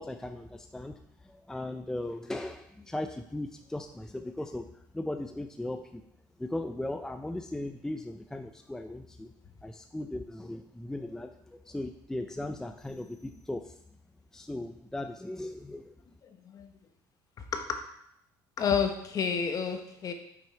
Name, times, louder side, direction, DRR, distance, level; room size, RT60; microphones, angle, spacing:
voice 1, 0.0-6.0 6.4-9.3 9.6-13.8 14.3-15.9, left 1 dB, 5° left, 6 dB, 0.4 m, -38 dB
voice 2, 16.2-16.7 17.4-17.8 18.6-20.1, left 6 dB, 45° left, 6 dB, 1.0 m, -30 dB
5.9 x 5.5 x 4.4 m, 0.75 s
cardioid pair, 100°, 9 cm